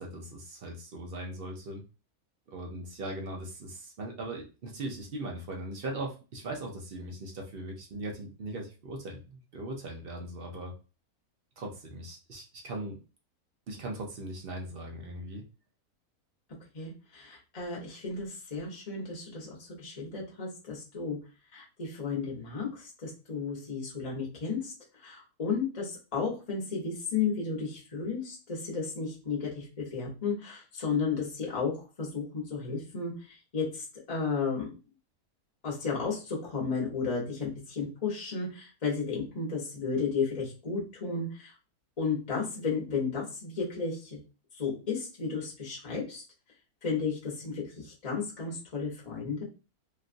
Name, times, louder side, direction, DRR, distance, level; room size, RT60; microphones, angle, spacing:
voice 1, 0.0-1.8 2.5-10.7 11.6-13.0 13.7-15.4, right 1 dB, 55° right, 1 dB, 0.7 m, -39 dB
voice 2, 16.7-19.5 19.8-21.2 21.5-24.7 25.0-33.1 33.5-34.7 35.6-41.5 42.0-44.2 44.6-46.2 46.8-49.4, left 5 dB, 30° left, -3 dB, 1.0 m, -33 dB
3.1 x 2.5 x 2.5 m, 0.32 s
omnidirectional pair, 1.6 m